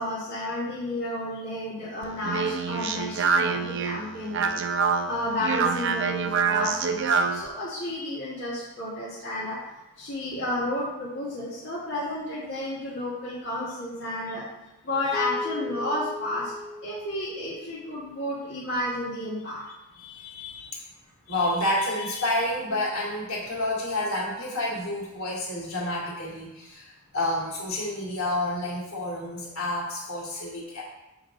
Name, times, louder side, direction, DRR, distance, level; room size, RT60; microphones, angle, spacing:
voice 1, 0.0-4.6 5.0-9.6 10.0-14.4 14.8-16.5 16.8-19.6 20.5-20.7, left 1 dB, 55° left, -10 dB, 1.6 m, -32 dB
Speech, 2.0-7.5, right 5 dB, 55° right, 0.5 m, -26 dB
Mallet percussion, 15.1-18.0, left 2 dB, 5° right, 0.9 m, -37 dB
voice 2, 19.9-20.7 21.3-30.8, left 1 dB, 75° left, -6 dB, 2.4 m, -29 dB
7.5 x 4.0 x 3.9 m, 0.96 s
head